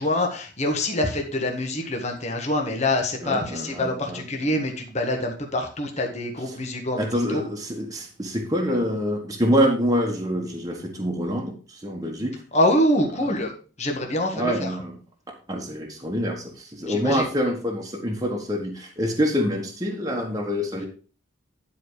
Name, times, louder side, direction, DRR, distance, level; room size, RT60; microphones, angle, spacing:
voice 1, 0.0-7.0 7.3-7.4 12.5-13.5 13.8-14.7 16.9-17.3, left 1 dB, 35° left, 2 dB, 1.6 m, -25 dB
voice 2, 3.2-4.2 7.0-12.3 13.2-13.5 14.3-14.9 15.5-20.9, equal, 15° right, -1 dB, 1.5 m, -26 dB
10.5 x 4.7 x 5.1 m, 0.38 s
head